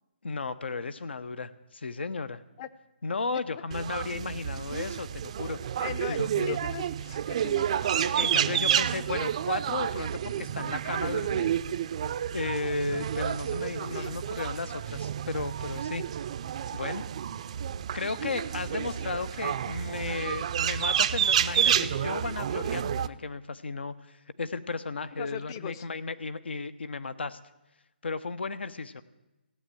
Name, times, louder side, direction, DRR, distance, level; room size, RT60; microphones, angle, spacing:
voice 1, 0.2-2.4 3.0-5.6 6.1-6.6 8.0-11.6 12.3-16.0 16.7-17.0 17.9-23.9 24.4-27.4 28.0-29.0, left 4 dB, 75° left, 14 dB, 1.0 m, -34 dB
sound 1, 3.7-23.1, right 9 dB, 35° right, 0.5 m, -30 dB
voice 2, 5.8-6.2 6.5-8.0 13.9-14.1 21.0-21.2 25.1-25.8, left 9 dB, 25° left, 14 dB, 0.6 m, -39 dB
16.0 x 8.6 x 9.1 m, 1.0 s
hypercardioid pair, 160°, 6 cm